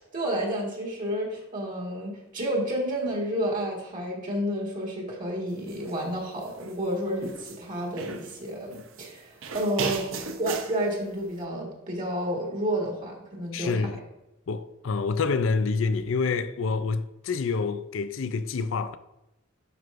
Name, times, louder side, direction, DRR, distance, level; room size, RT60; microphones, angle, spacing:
voice 1, 0.1-10.0 10.4-13.8, right 1 dB, 40° right, 1.7 m, -30 dB
sound 1, 5.7-5.9 6.4-7.6 8.0-9.1 9.4-10.8, right 4 dB, 70° right, 0.7 m, -35 dB
voice 2, 13.5-14.0 14.5-19.0, left 4 dB, 65° left, 0.4 m, -27 dB
11.0 x 4.6 x 2.5 m
head